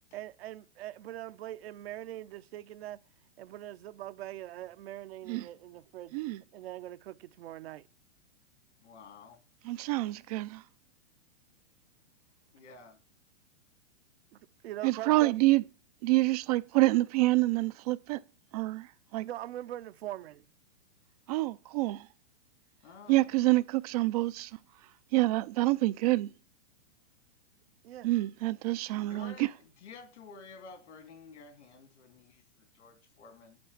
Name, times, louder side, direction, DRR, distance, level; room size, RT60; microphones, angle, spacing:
voice 1, 0.1-3.0 3.4-7.9 14.6-15.4 19.2-20.4 27.8-28.1, right 13 dB, 55° right, 0.8 m, -42 dB
voice 2, 8.8-9.4 12.5-13.0 22.8-23.3 29.1-29.5 29.8-33.6, left 4 dB, 75° left, 2.4 m, -51 dB
voice 3, 9.6-10.6 14.8-15.6 16.0-18.2 18.5-19.3 21.3-22.1 23.1-24.5 25.1-26.3 28.0-29.3, right 19 dB, 35° right, 0.5 m, -27 dB
8.7 x 6.4 x 8.4 m
hypercardioid pair, 145°, 36 cm